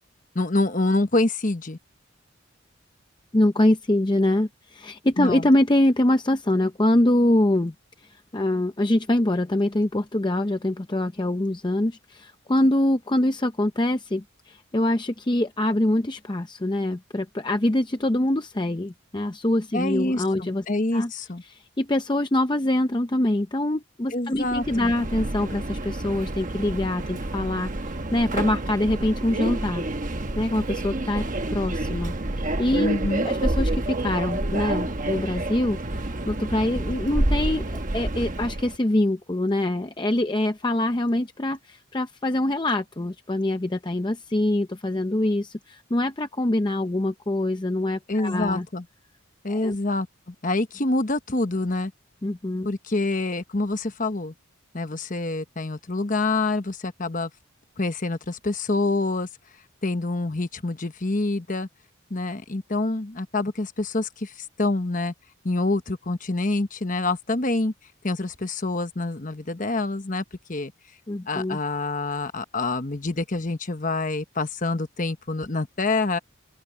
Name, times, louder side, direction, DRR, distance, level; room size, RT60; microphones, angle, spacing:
voice 1, 0.3-1.8 5.2-5.5 19.7-21.4 24.1-24.9 32.8-33.3 48.1-48.8 49.4-51.9 52.6-54.3 54.7-57.3 57.8-59.3 59.8-61.7 62.1-65.1 65.4-67.7 68.0-70.2 70.5-70.7 71.3-76.2, left 2 dB, 40° left, 1.1 m, -26 dB
voice 2, 3.3-7.7 8.0-20.6 20.9-21.1 21.5-29.8 30.4-31.3 31.5-33.0 33.2-48.7 49.5-49.8 52.2-52.7 71.1-71.6, left 1 dB, 20° left, 0.6 m, -24 dB
Subway metro underground, 24.4-38.8, right 1 dB, 40° right, 1.1 m, -28 dB
open air
head